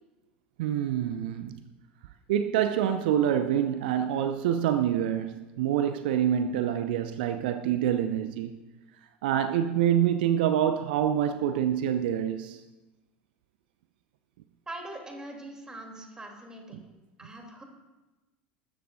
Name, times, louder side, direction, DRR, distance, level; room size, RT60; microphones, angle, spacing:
voice 1, 0.6-1.6 2.3-8.6 9.2-12.6 16.7-16.8, right 10 dB, 60° right, 0.6 m, -26 dB
voice 2, 14.7-16.8 17.2-17.6, right 1 dB, 15° right, 3.1 m, -42 dB
20.0 x 13.5 x 2.6 m
figure-of-eight pair, 75°, 6 cm